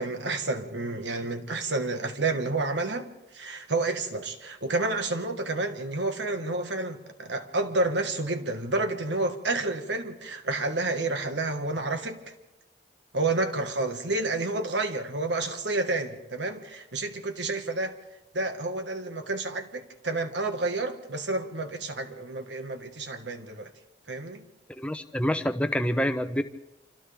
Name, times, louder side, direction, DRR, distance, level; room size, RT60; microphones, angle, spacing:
voice 1, 0.0-12.3 13.1-17.9 18.3-23.7 24.1-24.5, right 2 dB, 80° right, 1.6 m, -30 dB
voice 2, 24.7-26.4, equal, 5° left, 0.7 m, -27 dB
29.0 x 25.5 x 3.5 m
head